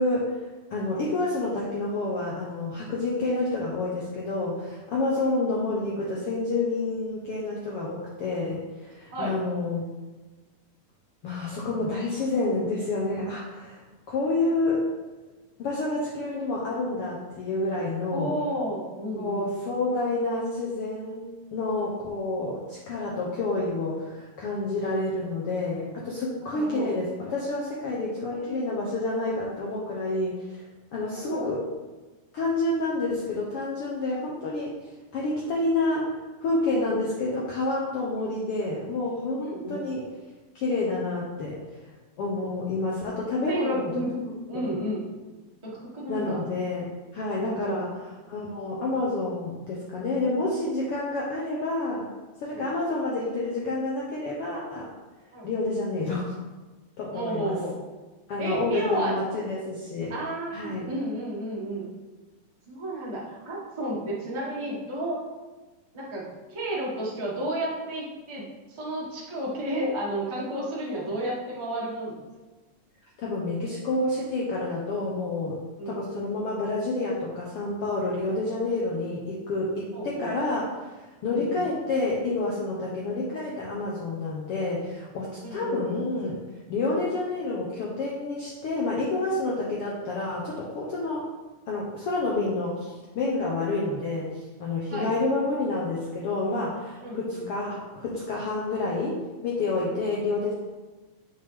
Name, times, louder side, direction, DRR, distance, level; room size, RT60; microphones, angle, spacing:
voice 1, 0.0-9.9 11.2-13.8 14.1-14.9 15.6-18.3 19.2-21.2 21.5-30.6 30.9-31.6 32.3-40.1 40.5-41.6 42.2-44.0 44.5-44.8 46.1-48.0 48.3-52.1 52.4-54.9 55.4-56.4 57.0-57.6 58.3-60.1 60.5-60.9 73.2-75.6 75.9-86.4 86.7-91.2 91.7-100.5, left 2 dB, 75° left, -4 dB, 1.3 m, -29 dB
voice 2, 18.1-19.5 26.5-26.9 28.3-28.6 31.1-31.5 36.8-37.1 38.2-38.3 39.4-39.8 43.5-45.1 45.6-46.4 47.4-47.8 52.5-52.7 55.3-55.5 57.1-57.8 58.4-59.1 60.1-61.9 62.7-65.2 65.9-72.2 75.8-76.0 79.9-80.3 81.2-81.6 85.4-85.8 94.9-95.1 97.0-97.5 99.9-100.3, right 1 dB, 25° right, -6 dB, 0.6 m, -32 dB
6.9 x 6.2 x 3.5 m, 1.2 s
omnidirectional pair, 3.8 m